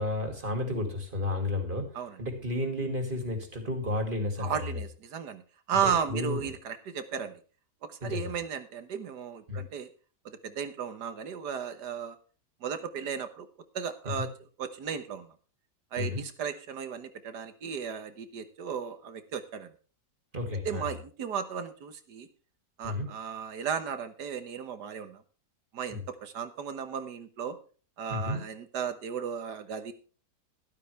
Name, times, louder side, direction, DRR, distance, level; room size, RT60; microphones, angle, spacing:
voice 1, 0.0-1.9 2.2-4.8 5.8-6.4 8.0-8.3 9.5-9.6 14.2-14.3 16.0-16.2 20.3-20.9 22.8-23.1 25.9-26.0 28.1-28.4, left 2 dB, 30° right, 4 dB, 2.8 m, -32 dB
voice 2, 4.4-5.4 5.7-7.4 7.9-9.9 10.3-12.2 12.6-13.5 13.7-14.3 14.6-15.3 15.9-19.7 20.7-22.3 22.8-25.2 25.7-27.6 28.0-29.9, right 7 dB, 90° right, 9 dB, 1.9 m, -35 dB
12.5 x 12.0 x 3.4 m, 0.39 s
omnidirectional pair, 1.7 m